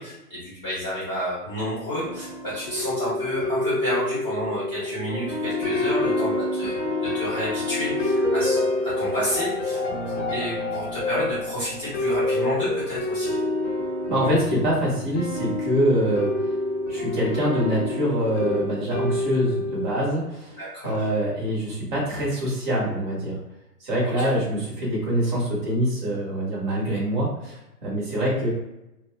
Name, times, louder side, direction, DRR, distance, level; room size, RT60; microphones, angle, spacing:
voice 1, 0.0-13.4 20.6-21.0 24.0-24.3, equal, 10° left, -12 dB, 0.9 m, -30 dB
sound 1, 1.9-19.9, left 2 dB, 35° left, 0.8 m, -27 dB
voice 2, 14.1-16.3 16.9-20.6 20.8-23.4 23.8-28.5, equal, 30° right, -5 dB, 1.0 m, -24 dB
2.7 x 2.2 x 3.2 m, 0.92 s
figure-of-eight pair, 135°, 47 cm